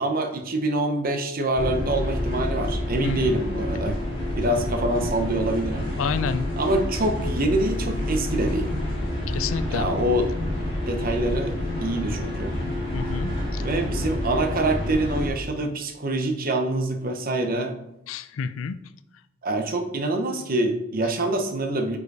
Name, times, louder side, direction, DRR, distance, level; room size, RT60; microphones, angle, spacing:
voice 1, 0.0-4.0 4.4-5.9 6.6-8.7 9.7-10.3 10.9-12.5 13.6-17.8 19.4-22.0, right 1 dB, 45° right, 5 dB, 0.8 m, -25 dB
sound 1, 1.6-15.3, left 1 dB, 30° left, 2.3 m, -28 dB
voice 2, 3.0-3.4 6.0-6.4 9.3-9.9 12.9-13.6 18.1-18.8, left 6 dB, 70° left, 13 dB, 0.4 m, -29 dB
5.0 x 4.9 x 4.7 m, 0.86 s
head